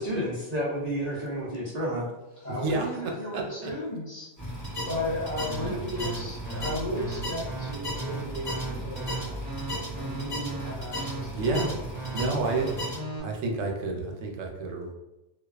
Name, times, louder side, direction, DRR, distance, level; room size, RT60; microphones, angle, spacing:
voice 1, 0.0-2.0, equal, 55° right, -7 dB, 0.4 m, -30 dB
voice 2, 2.4-4.3 4.9-9.4 9.9-12.1, left 1 dB, 45° left, -6 dB, 0.7 m, -35 dB
voice 3, 3.3-3.7 11.3-11.7 12.1-14.9, right 3 dB, 85° right, 1 dB, 0.9 m, -30 dB
sound 1, 4.4-13.0, equal, 15° left, 1.0 m, -35 dB
sound 2, 5.4-13.2, right 3 dB, 20° right, 0.9 m, -37 dB
2.3 x 2.3 x 2.3 m, 0.99 s
omnidirectional pair, 1.3 m